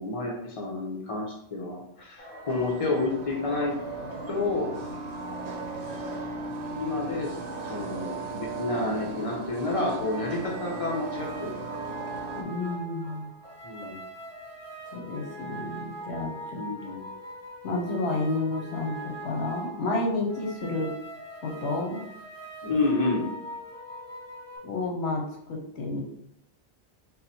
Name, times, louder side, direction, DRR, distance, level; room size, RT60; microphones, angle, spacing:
voice 1, 0.0-3.8 4.3-4.7 6.7-11.8 13.6-14.0 16.6-17.1 22.6-23.3, left 2 dB, 35° left, -1 dB, 0.8 m, -30 dB
sound 1, 2.2-6.7 7.4-8.2 8.9-11.3 11.9-14.2, right 2 dB, 10° left, 1.0 m, -46 dB
sound 2, 2.5-12.4, right 3 dB, 75° right, 0.8 m, -37 dB
sound 3, 10.9-24.6, right 1 dB, 15° right, 1.0 m, -42 dB
voice 2, 12.3-13.3 14.9-16.6 17.6-20.9 21.4-22.1 24.6-26.0, left 2 dB, 75° left, 0 dB, 1.0 m, -30 dB
3.9 x 2.1 x 4.2 m, 0.76 s
omnidirectional pair, 1.2 m